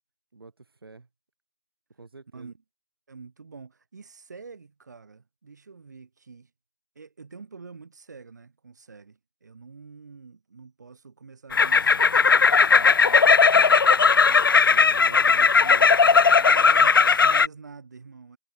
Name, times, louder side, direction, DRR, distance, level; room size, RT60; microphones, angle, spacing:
voice 1, 0.3-1.1 1.9-2.5 15.1-16.6, right 3 dB, 75° right, 7.7 m, -47 dB
voice 2, 3.1-6.5 7.0-13.4 14.2-15.5 16.4-18.4, right 4 dB, 45° right, 3.7 m, -46 dB
sound 1, 11.5-17.5, left 5 dB, 65° left, 0.5 m, -17 dB
hypercardioid pair, 175°, 12 cm